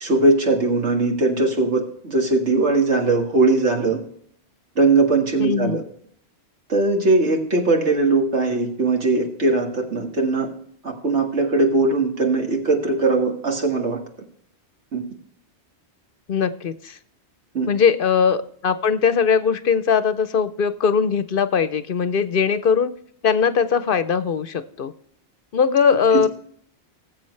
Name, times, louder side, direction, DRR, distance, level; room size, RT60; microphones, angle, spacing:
voice 1, 0.0-4.0 4.8-5.8 6.7-10.5 10.8-14.0 14.9-15.0 17.5-17.7 26.1-26.3, right 3 dB, 85° right, 2 dB, 2.1 m, -20 dB
voice 2, 5.4-5.8 16.3-17.0 17.7-22.9 23.2-24.9 25.5-26.3, left 6 dB, 60° left, 12 dB, 0.8 m, -20 dB
19.5 x 7.5 x 3.2 m, 0.64 s
omnidirectional pair, 1.1 m